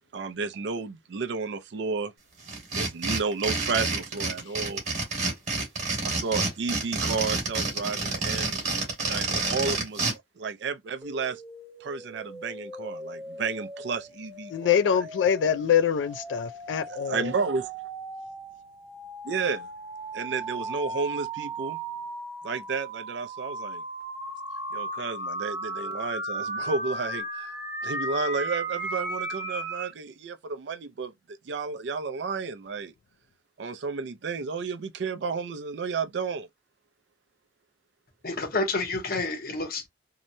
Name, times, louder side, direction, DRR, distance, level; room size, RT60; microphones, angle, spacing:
voice 1, 0.1-2.1 2.7-4.8 6.0-8.6 9.1-10.0 10.4-11.4 11.8-15.0 16.9-17.7 19.2-19.7 20.1-21.8 22.4-23.8 24.7-31.1 31.4-32.9 33.6-36.5, right 4 dB, 70° right, 0.4 m, -32 dB
sound 1, 2.5-10.1, right 3 dB, 40° right, 1.2 m, -28 dB
sound 2, 11.0-29.9, right 1 dB, 15° right, 0.8 m, -36 dB
voice 2, 14.5-17.3, left 8 dB, 80° left, 0.3 m, -24 dB
voice 3, 38.2-39.9, left 3 dB, 50° left, 0.7 m, -29 dB
2.8 x 2.1 x 2.6 m
head